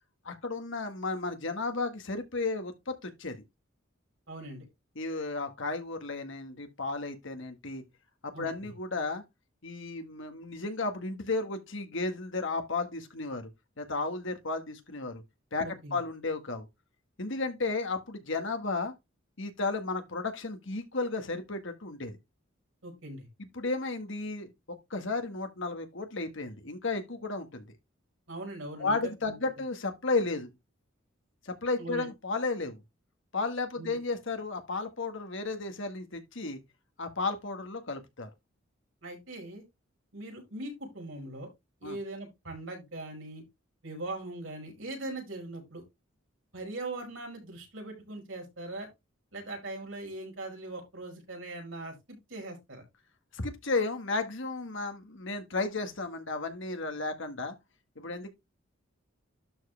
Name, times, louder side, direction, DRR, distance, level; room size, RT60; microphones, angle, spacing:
voice 1, 0.3-3.4 5.0-7.8 8.2-9.2 9.6-13.5 13.8-15.2 15.5-16.7 17.2-18.9 19.4-22.2 23.5-27.7 28.8-30.5 31.4-32.8 33.3-36.6 37.0-38.3 41.8-42.0 53.3-57.5 58.0-58.3, left 3 dB, 65° left, 1.7 m, -33 dB
voice 2, 4.3-4.7 8.3-8.7 15.6-16.0 22.8-23.3 28.3-29.0 29.3-29.4 31.8-32.1 33.8-34.0 39.0-39.6 40.1-41.5 41.8-43.4 43.8-45.8 46.5-48.9 49.3-52.8, right 2 dB, 70° right, 5.1 m, -40 dB
12.0 x 4.6 x 3.4 m
head